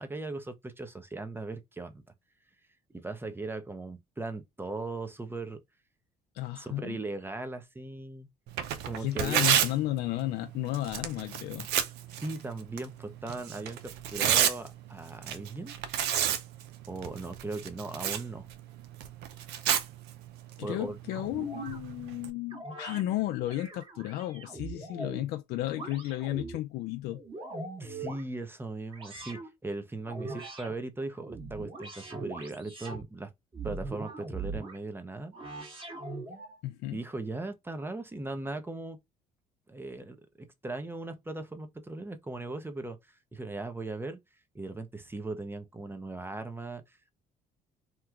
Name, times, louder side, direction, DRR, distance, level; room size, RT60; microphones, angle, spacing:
voice 1, 0.0-2.0 3.0-5.6 6.6-8.3 8.8-9.4 12.2-15.8 16.9-18.5 20.6-21.0 27.8-33.3 33.6-35.3 36.9-39.0 39.7-44.2 44.5-47.1, right 2 dB, 15° right, 0.7 m, -38 dB
voice 2, 6.3-7.0 9.0-11.7 20.6-27.2 36.6-37.0, left 15 dB, 70° left, 0.4 m, -33 dB
Tearing, 8.5-22.3, right 10 dB, 80° right, 0.5 m, -32 dB
sound 1, 21.1-21.8 22.5-23.0 23.5-25.3 25.7-26.6 27.1-28.2 28.9-29.5 30.1-30.7 31.2-33.0 33.5-34.8 35.3-36.6, right 3 dB, 30° right, 1.5 m, -41 dB
2.9 x 2.3 x 3.5 m
supercardioid pair, 75°, 17 cm